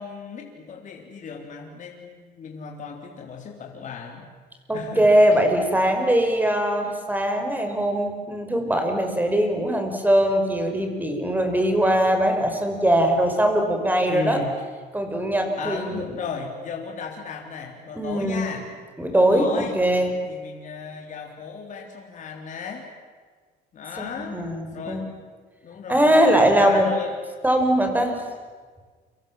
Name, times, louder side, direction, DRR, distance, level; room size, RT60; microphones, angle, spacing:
voice 1, 0.0-4.3 4.7-5.2 14.1-14.5 15.6-18.6 19.1-19.8 20.2-22.9 23.7-24.4 24.7-25.1 25.6-26.2 26.5-27.2, left 5 dB, 50° left, 1 dB, 3.8 m, -35 dB
voice 2, 4.7-14.4 14.9-16.1 18.0-18.5 19.0-20.1 24.0-25.1 25.9-26.9 27.4-28.2, right 1 dB, 10° right, 5 dB, 5.4 m, -21 dB
29.5 x 25.5 x 7.5 m, 1.5 s
cardioid pair, 110°, 17 cm